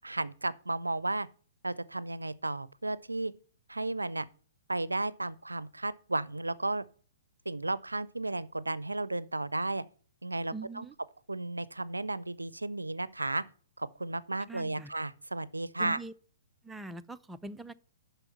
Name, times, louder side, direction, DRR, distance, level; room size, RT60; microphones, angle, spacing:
voice 1, 0.0-1.3 1.6-3.3 3.7-4.3 4.7-6.8 7.5-9.8 10.2-10.9 11.3-13.4 13.8-16.0, right 2 dB, 85° right, 0.4 m, -33 dB
voice 2, 10.5-10.9 14.5-14.9 15.8-16.1 16.6-17.7, right 3 dB, 5° right, 0.4 m, -42 dB
7.0 x 5.8 x 6.9 m
figure-of-eight pair, 115°, 0 cm